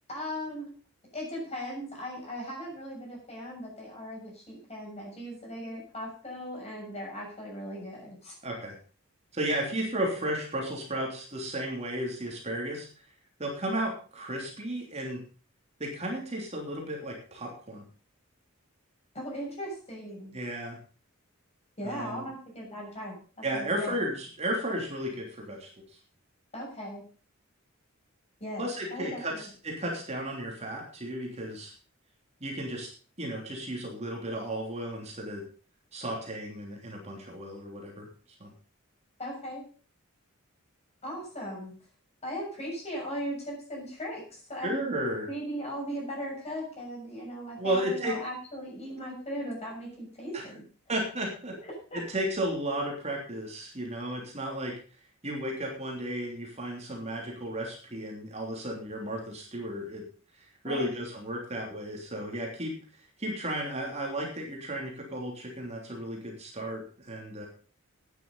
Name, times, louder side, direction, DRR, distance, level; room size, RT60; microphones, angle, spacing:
voice 1, 0.1-0.7 1.1-8.3 19.1-20.4 21.8-23.9 26.5-27.0 28.4-29.5 39.2-39.6 41.0-41.7 42.2-44.9 45.3-50.6 51.6-52.0 60.6-60.9, equal, 30° left, -2 dB, 6.9 m, -38 dB
voice 2, 8.4-8.8 9.3-12.9 13.4-15.2 15.8-17.8 20.3-20.8 21.8-22.3 23.4-25.7 28.6-31.7 32.4-32.9 33.2-35.4 35.9-38.1 38.4-38.5 44.6-45.3 47.6-48.1 50.3-50.4 50.9-51.5 51.9-54.7 55.2-60.0 60.3-62.7 63.2-67.5, right 1 dB, 30° right, 0 dB, 3.2 m, -34 dB
12.0 x 9.8 x 5.4 m, 0.40 s
head